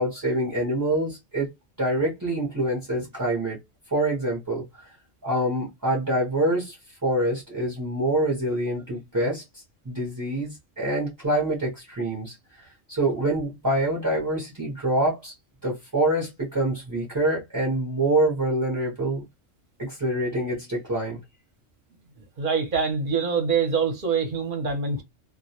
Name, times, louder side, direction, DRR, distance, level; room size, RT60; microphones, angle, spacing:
voice 1, 0.0-1.5 1.8-3.6 3.9-4.9 5.2-6.8 7.0-15.3 15.6-19.2 19.8-21.2, right 1 dB, 25° right, 0.5 m, -26 dB
voice 2, 22.4-25.0, right 5 dB, 50° right, 0.8 m, -25 dB
2.2 x 2.1 x 2.7 m
omnidirectional pair, 1.3 m